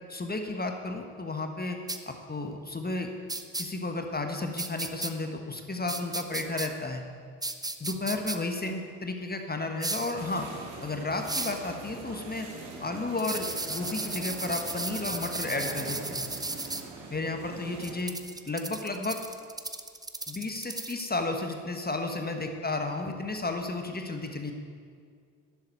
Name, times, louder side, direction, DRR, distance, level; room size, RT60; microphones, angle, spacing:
voice 1, 0.1-1.8 2.1-3.1 3.6-7.0 7.8-10.5 10.8-12.5 12.8-16.3 17.1-18.1 18.5-19.2 20.3-24.5, left 2 dB, 20° left, 4 dB, 1.5 m, -33 dB
sound 1, 1.9-2.0 3.3-3.6 4.6-5.1 5.9-6.7 7.4-8.4 9.8-10.1 11.3-11.6 13.2-16.8 17.8-21.1, right 2 dB, 10° right, 0.9 m, -35 dB
sound 2, 10.1-17.9, right 3 dB, 70° right, 2.0 m, -42 dB
12.0 x 7.4 x 9.4 m, 2.1 s
figure-of-eight pair, 45°, 43 cm